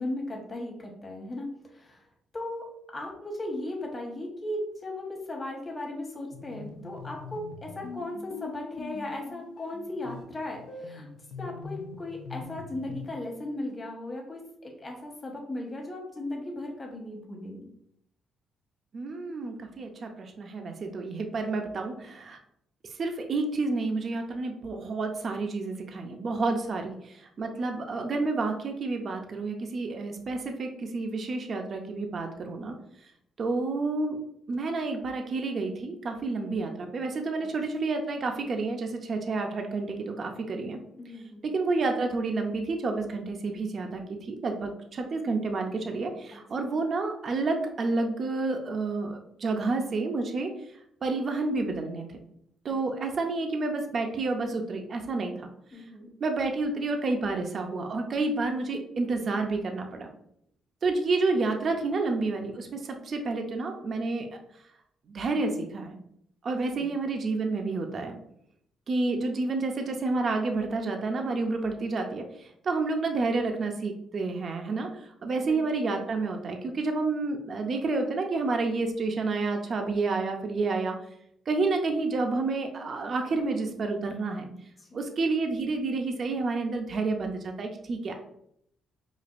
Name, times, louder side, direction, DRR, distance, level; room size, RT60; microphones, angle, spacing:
voice 1, 0.0-2.0 2.3-2.6 2.9-11.1 11.4-17.7 41.0-41.4 52.7-52.8 55.7-56.1 66.5-67.0 75.4-75.6 84.8-85.0, left 1 dB, 30° left, -1 dB, 1.1 m, -37 dB
sound 1, 6.3-13.2, left 4 dB, 70° left, 0.5 m, -43 dB
voice 2, 18.9-22.4 23.0-32.7 33.4-34.2 34.5-40.8 41.4-50.5 51.0-52.2 52.6-55.5 56.2-60.1 60.8-64.4 65.1-66.0 66.4-68.2 68.9-81.0 81.5-84.5 84.9-88.1, right 3 dB, 50° right, 4 dB, 0.5 m, -29 dB
5.0 x 2.4 x 2.4 m, 0.74 s
cardioid pair, 90°, 0 cm